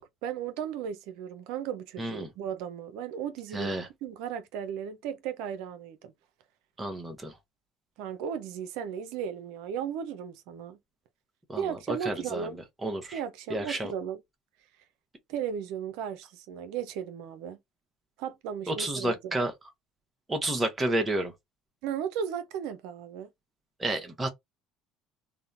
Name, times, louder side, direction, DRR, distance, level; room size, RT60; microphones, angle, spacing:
voice 1, 0.0-3.7 4.0-6.1 8.0-10.8 11.6-12.6 13.1-14.2 15.3-17.6 18.2-19.1 21.8-23.3, right 8 dB, 75° right, 0.4 m, -35 dB
voice 2, 2.0-2.3 3.5-3.9 6.8-7.3 11.5-12.5 12.8-13.2 13.5-13.9 18.7-19.5 20.3-21.3 23.8-24.3, right 1 dB, 20° right, 0.8 m, -30 dB
2.7 x 2.1 x 2.4 m
supercardioid pair, 85°, 0 cm